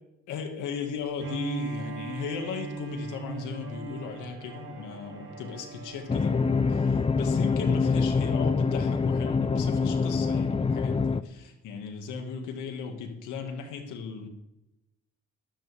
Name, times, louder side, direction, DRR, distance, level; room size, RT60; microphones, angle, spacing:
voice 1, 0.3-14.3, left 5 dB, 90° left, 5 dB, 2.1 m, -36 dB
Bowed string instrument, 1.2-7.2, right 4 dB, 45° right, 5.2 m, -40 dB
sound 1, 6.1-11.2, left 4 dB, 20° left, 0.6 m, -25 dB
14.0 x 13.5 x 3.6 m, 0.90 s
cardioid pair, 90°, 30 cm